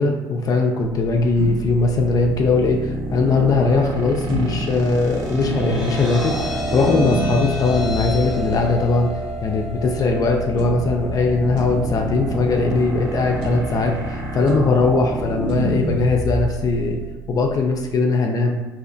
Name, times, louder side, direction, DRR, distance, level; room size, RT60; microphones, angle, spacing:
voice 1, 0.0-17.0 17.3-18.6, left 3 dB, 45° left, 2 dB, 0.4 m, -20 dB
sound 1, 1.3-2.9 4.3-6.9 7.7-10.2 10.6-13.1 13.4-16.9, equal, 70° right, 0.6 m, -32 dB
sound 2, 2.3-18.0, right 1 dB, 40° right, 1.0 m, -29 dB
sound 3, 4.9-17.1, equal, 5° right, 0.7 m, -32 dB
2.7 x 2.0 x 2.6 m, 1.2 s
supercardioid pair, 75°, 9 cm